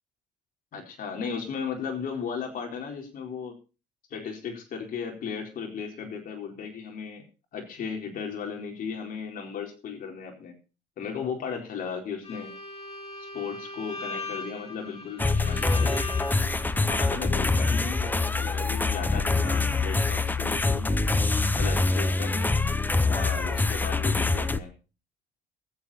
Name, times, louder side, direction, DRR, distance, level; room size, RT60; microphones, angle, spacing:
voice 1, 0.7-3.5 4.1-7.2 7.5-10.6 11.0-12.5 13.3-16.0 16.8-21.1 21.6-22.6 23.1-24.7, left 6 dB, 55° left, 2 dB, 4.4 m, -35 dB
Bowed string instrument, 12.2-16.9, left 2 dB, 35° left, 7.1 m, -39 dB
sound 1, 15.2-24.6, left 3 dB, 10° left, 0.8 m, -25 dB
22.0 x 8.0 x 4.3 m, 0.33 s
cardioid pair, 110°, 17 cm